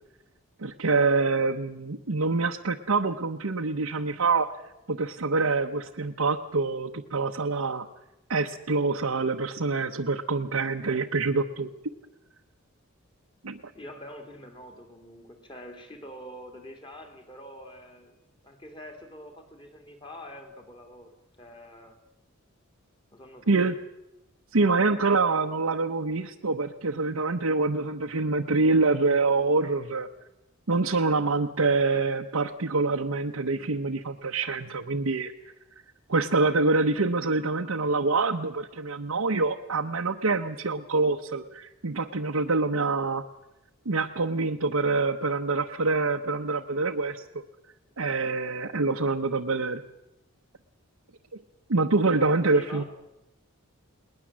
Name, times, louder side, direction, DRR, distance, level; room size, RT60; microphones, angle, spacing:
voice 1, 0.6-4.5 4.9-7.9 8.3-11.7 13.4-13.6 23.5-23.7 24.5-30.1 30.7-35.3 36.1-43.2 43.8-47.2 48.0-49.8 51.7-52.8, right 3 dB, 75° right, 1 dB, 1.0 m, -26 dB
voice 2, 13.7-22.0 23.1-23.6 52.5-52.8, left 1 dB, 20° left, 4 dB, 2.8 m, -45 dB
20.0 x 20.0 x 7.5 m, 0.90 s
head